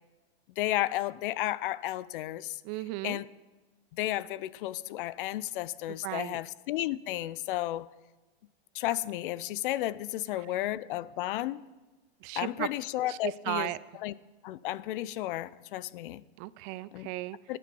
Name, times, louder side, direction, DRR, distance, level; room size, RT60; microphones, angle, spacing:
voice 1, 0.6-2.6 3.0-3.3 3.9-7.9 8.7-11.7 12.4-13.7 14.0-14.1 14.4-16.2 16.9-17.1 17.5-17.6, left 15 dB, 60° left, 0.6 m, -33 dB
voice 2, 2.6-3.2 5.9-6.4 12.2-12.7 13.1-13.8 16.4-17.4, right 19 dB, 35° right, 0.4 m, -35 dB
17.5 x 11.0 x 5.3 m
hypercardioid pair, 135°, 30 cm